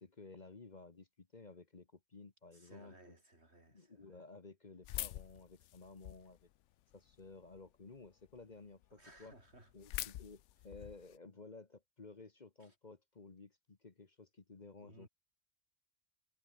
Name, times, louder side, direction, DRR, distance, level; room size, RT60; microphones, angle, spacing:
voice 1, 0.0-3.1 3.7-6.5 6.9-9.3 9.7-15.1, left 3 dB, 40° left, 1.4 m, -55 dB
voice 2, 2.5-4.2 8.9-9.7 12.6-12.8 14.8-15.1, right 1 dB, 65° right, 6.4 m, -61 dB
sound 1, 4.8-6.4 6.9-7.6 8.1-8.2 8.4-8.5 8.8-8.9 9.1-11.2, left 13 dB, 80° left, 0.9 m, -44 dB
omnidirectional pair, 1.2 m